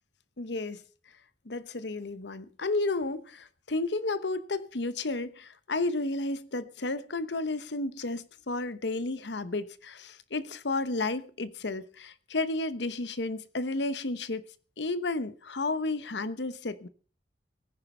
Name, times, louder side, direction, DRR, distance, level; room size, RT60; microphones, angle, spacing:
voice 1, 0.4-0.8 1.4-14.4 14.8-16.9, left 2 dB, 70° left, 1.0 m, -32 dB
18.5 x 9.8 x 5.4 m
head